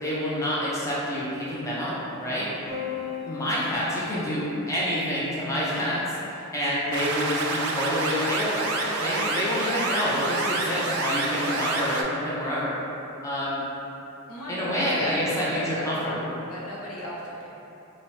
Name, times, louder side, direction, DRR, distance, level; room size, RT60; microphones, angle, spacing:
voice 1, 0.0-2.5 3.3-6.0 6.3-12.8 13.2-13.6 14.5-16.3, equal, 15° left, -8 dB, 0.4 m, -28 dB
Piano, 2.7-7.1 8.3-9.0, left 7 dB, 55° left, 0.8 m, -40 dB
sound 1, 6.9-12.0, right 2 dB, 80° right, 0.3 m, -28 dB
voice 2, 14.3-16.1 16.5-17.5, equal, 85° left, -6 dB, 0.7 m, -36 dB
2.8 x 2.0 x 3.1 m, 2.9 s
head